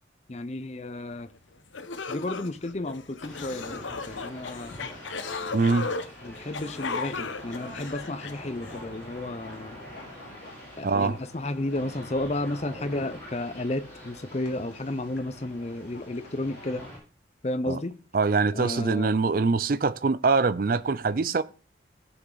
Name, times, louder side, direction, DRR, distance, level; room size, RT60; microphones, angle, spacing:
voice 1, 0.3-1.3 2.1-4.8 6.2-9.8 10.8-16.9 17.4-18.0 18.5-19.2, left 2 dB, 35° left, 0.6 m, -32 dB
sound 1, 1.3-1.4 1.7-8.8, left 4 dB, 85° left, 0.9 m, -36 dB
sound 2, 3.2-17.0, equal, 10° left, 7.3 m, -46 dB
sound 3, 3.6-16.9, left 2 dB, 65° left, 2.1 m, -49 dB
voice 2, 5.5-5.9 10.8-11.2 17.6-17.8 18.1-21.4, right 4 dB, 45° right, 0.4 m, -24 dB
16.5 x 6.0 x 3.9 m
head